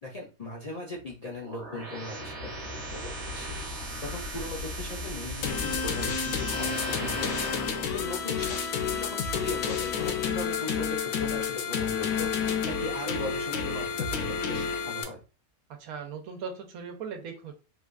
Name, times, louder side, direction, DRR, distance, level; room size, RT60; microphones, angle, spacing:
voice 1, 0.0-3.6 4.0-7.5 7.9-8.6 8.9-12.3 12.7-15.2, left 2 dB, 55° left, -4 dB, 0.4 m, -39 dB
sound 1, 1.4-7.8, equal, 60° right, 1.1 m, -37 dB
sound 2, 5.4-15.0, left 6 dB, 75° left, 1.0 m, -30 dB
voice 2, 15.8-17.5, right 6 dB, 90° right, 4 dB, 1.1 m, -38 dB
3.2 x 2.3 x 2.4 m, 0.33 s
omnidirectional pair, 1.5 m